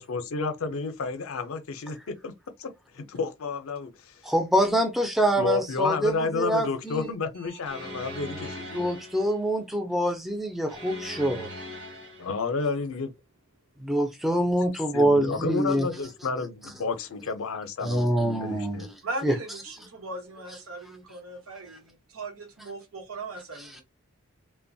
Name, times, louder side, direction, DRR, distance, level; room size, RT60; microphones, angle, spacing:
voice 1, 0.0-2.3 2.6-4.1 5.4-9.0 12.2-13.1 14.9-18.1 18.4-18.9, left 4 dB, 70° left, 0.5 m, -31 dB
voice 2, 4.2-7.1 8.7-11.5 13.8-15.9 17.8-19.4 21.7-21.8 23.5-23.8, right 1 dB, ahead, 0.3 m, -25 dB
sound 1, 7.6-9.4 10.7-12.4, left 1 dB, 50° right, 0.9 m, -40 dB
voice 3, 19.0-23.8, right 2 dB, 80° right, 0.9 m, -38 dB
2.9 x 2.1 x 2.6 m
head